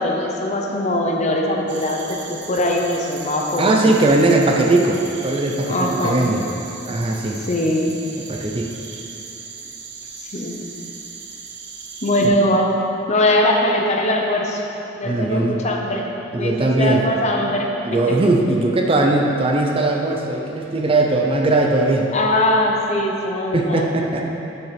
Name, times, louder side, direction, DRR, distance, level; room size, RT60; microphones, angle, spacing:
voice 1, 0.0-3.9 5.7-6.2 7.5-7.9 10.2-10.6 12.0-12.7 13.1-14.6 15.0-16.1 16.4-17.7 18.1-18.2 20.7-20.8 22.1-23.9, left 1 dB, 40° left, 0 dB, 0.9 m, -21 dB
sound 1, 1.7-12.3, right 5 dB, 65° right, 0.8 m, -37 dB
voice 2, 3.6-6.5 6.9-7.4 8.3-8.8 12.2-12.3 15.0-15.6 16.3-17.0 17.8-22.1 23.5-24.3, right 2 dB, 30° right, 1 dB, 0.6 m, -19 dB
7.3 x 5.7 x 5.9 m, 2.9 s
head